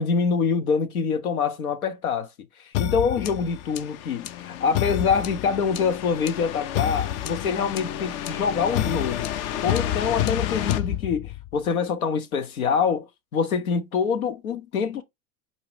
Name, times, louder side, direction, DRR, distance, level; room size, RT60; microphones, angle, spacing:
voice 1, 0.0-2.3 2.8-9.3 9.6-15.0, left 6 dB, 80° left, 0.8 m, -25 dB
sound 1, 2.7-11.6, left 12 dB, 40° left, 0.4 m, -29 dB
4.1 x 2.8 x 3.1 m
hypercardioid pair, 85°, 42 cm